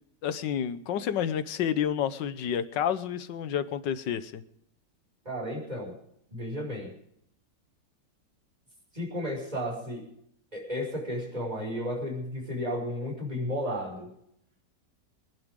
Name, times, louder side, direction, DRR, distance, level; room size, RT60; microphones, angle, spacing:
voice 1, 0.2-4.4, left 9 dB, 80° left, 13 dB, 1.6 m, -29 dB
voice 2, 5.2-5.9 6.3-6.9 8.9-10.1 10.5-14.1, equal, 20° right, -1 dB, 6.0 m, -33 dB
26.0 x 11.0 x 3.7 m, 0.72 s
omnidirectional pair, 1.9 m